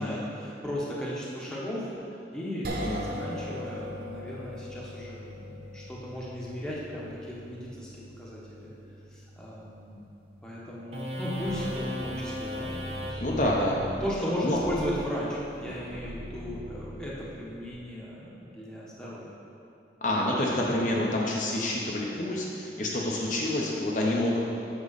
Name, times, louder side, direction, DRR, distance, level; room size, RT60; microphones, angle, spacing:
voice 1, 0.0-8.7 9.1-10.0 10.4-13.2 14.0-19.3, equal, 5° left, -7 dB, 1.2 m, -36 dB
sound 1, 2.6-15.0, equal, 60° right, 0.9 m, -42 dB
sound 2, 10.9-17.7, equal, 35° right, 0.8 m, -37 dB
voice 2, 13.2-13.8 14.4-14.6 20.0-24.4, left 1 dB, 45° left, -3 dB, 0.8 m, -28 dB
8.2 x 6.3 x 4.1 m, 2.7 s
head